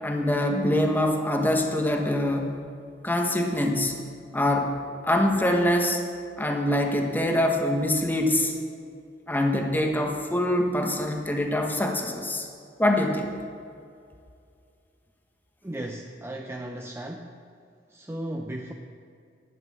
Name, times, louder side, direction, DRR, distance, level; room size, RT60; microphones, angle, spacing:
voice 1, 0.0-2.5 3.0-3.9 4.3-4.7 5.0-6.1 6.4-8.5 9.3-12.5 12.8-13.3, left 1 dB, 10° left, 2 dB, 1.2 m, -24 dB
voice 2, 15.6-17.3 17.9-18.7, right 1 dB, 15° right, 2 dB, 0.6 m, -35 dB
11.0 x 7.2 x 8.5 m, 2.4 s
head